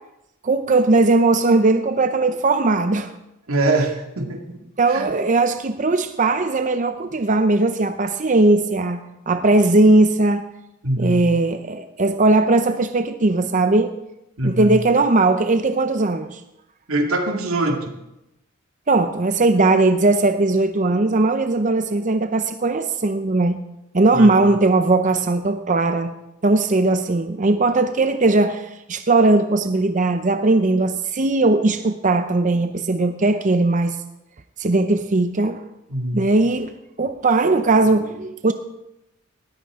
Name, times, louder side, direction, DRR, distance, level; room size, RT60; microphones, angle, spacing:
voice 1, 0.4-3.1 4.8-9.0 9.3-10.4 11.0-13.9 14.4-16.4 18.9-23.6 23.9-26.1 26.4-34.0 34.6-35.7 36.1-36.7 37.0-38.5, right 2 dB, 35° right, 9 dB, 0.6 m, -18 dB
voice 2, 3.5-4.6 4.9-5.1 10.8-11.2 14.4-14.8 16.9-17.9 24.1-24.5 35.9-36.2, right 2 dB, 90° right, 3 dB, 2.2 m, -23 dB
18.5 x 14.0 x 3.7 m, 0.89 s
head